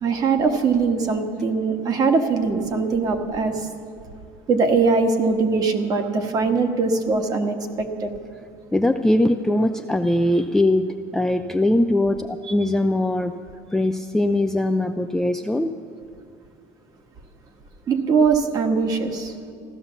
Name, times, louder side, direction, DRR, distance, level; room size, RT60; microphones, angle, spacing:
voice 1, 0.0-3.7 4.5-8.1 17.9-19.3, right 4 dB, 35° right, 5 dB, 1.4 m, -21 dB
voice 2, 8.7-10.9 11.1-13.3 13.7-15.7, left 1 dB, 5° left, 5 dB, 0.3 m, -21 dB
15.0 x 12.0 x 7.0 m, 2.3 s
cardioid pair, 145°, 12 cm